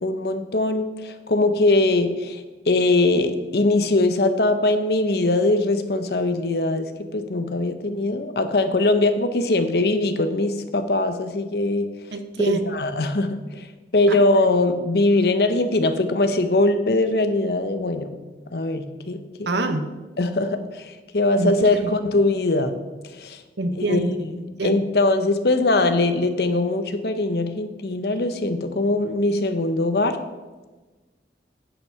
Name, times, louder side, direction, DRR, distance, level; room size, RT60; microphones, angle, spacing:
voice 1, 0.0-6.9 7.1-11.9 12.5-13.4 13.9-18.1 18.5-19.2 20.2-22.7 23.2-23.4 23.8-24.3 24.6-30.2, left 2 dB, 65° left, 9 dB, 0.8 m, -21 dB
voice 2, 12.1-12.6 14.1-14.2 19.5-19.8 21.4-21.5 21.8-21.9 23.6-24.1 24.4-24.8, right 2 dB, 85° right, 8 dB, 1.0 m, -25 dB
9.8 x 6.0 x 5.7 m, 1.2 s
head